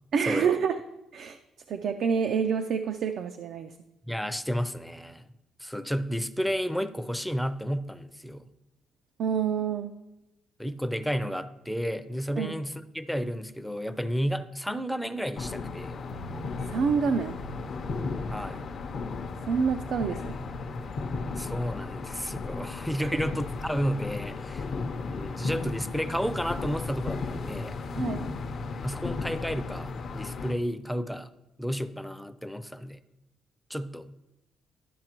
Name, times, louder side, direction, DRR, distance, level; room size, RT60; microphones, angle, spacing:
voice 1, 0.1-0.8 1.1-1.4 1.7-3.7 9.2-9.9 12.4-12.6 16.7-17.4 19.5-20.4 23.0-23.2 27.9-28.3, right 6 dB, 70° right, 7 dB, 0.4 m, -27 dB
voice 2, 4.1-5.2 5.6-8.5 10.6-15.9 18.3-18.7 21.3-24.7 25.0-27.8 28.8-31.3 31.6-33.0 33.7-34.1, equal, ahead, 11 dB, 0.5 m, -32 dB
sound 1, 15.4-30.5, left 4 dB, 55° left, 0.6 m, -35 dB
11.5 x 6.8 x 2.9 m, 0.96 s
cardioid pair, 90°, 0 cm